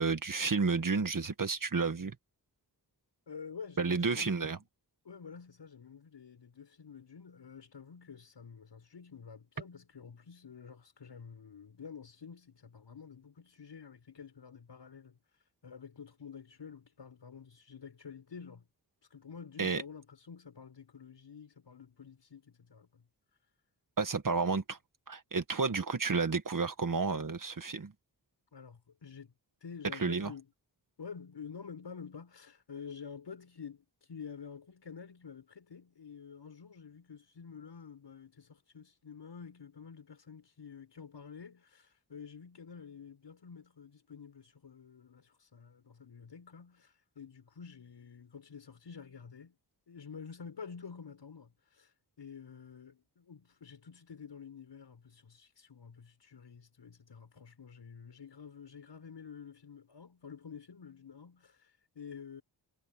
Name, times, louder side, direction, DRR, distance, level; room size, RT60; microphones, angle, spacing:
voice 1, 0.0-2.1 3.8-4.6 19.6-19.8 24.0-24.8 25.1-27.9 30.0-30.3, right 4 dB, 50° right, 1.9 m, -31 dB
voice 2, 3.3-4.6 5.0-15.2 15.6-18.7 19.1-23.0 28.5-29.3 29.6-30.5 31.0-49.6 49.9-51.9 52.2-62.4, left 6 dB, 75° left, 5.9 m, -49 dB
cardioid pair, 65°, 42 cm